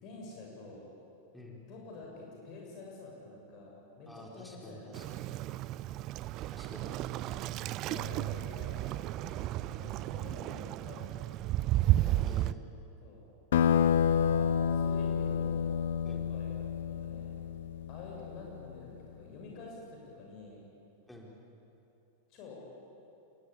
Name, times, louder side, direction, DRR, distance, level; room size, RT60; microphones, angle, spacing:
voice 1, 0.0-0.9 1.7-4.9 6.9-7.5 7.8-8.9 9.7-11.2 13.0-13.2 14.0-15.7 16.1-16.5 16.9-17.3 17.9-20.6 22.3-22.7, left 3 dB, 40° left, -2 dB, 7.2 m, -48 dB
voice 2, 1.3-1.6 4.1-5.3 6.5-7.0 9.2-9.5 12.0-12.6 16.0-16.3 21.1-21.3, left 1 dB, 5° left, -1 dB, 4.7 m, -49 dB
Waves surf, 4.9-12.5, right 15 dB, 40° right, 0.5 m, -33 dB
sound 1, 13.5-18.6, left 7 dB, 60° left, 0.9 m, -29 dB
27.0 x 23.0 x 8.7 m, 2.8 s
figure-of-eight pair, 90°, 0 cm